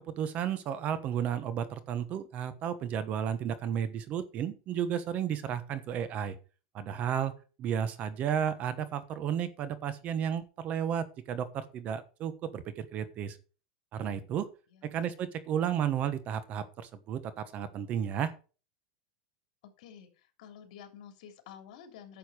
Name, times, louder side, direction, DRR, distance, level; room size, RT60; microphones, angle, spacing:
voice 1, 0.2-6.3 6.7-7.3 7.6-13.4 13.9-14.5 14.8-18.3, right 9 dB, 35° right, 13 dB, 1.2 m, -33 dB
voice 2, 14.7-15.3 19.8-22.2, left 8 dB, 70° left, 5 dB, 3.1 m, -51 dB
11.0 x 6.9 x 5.0 m, 0.35 s
supercardioid pair, 145°, 4 cm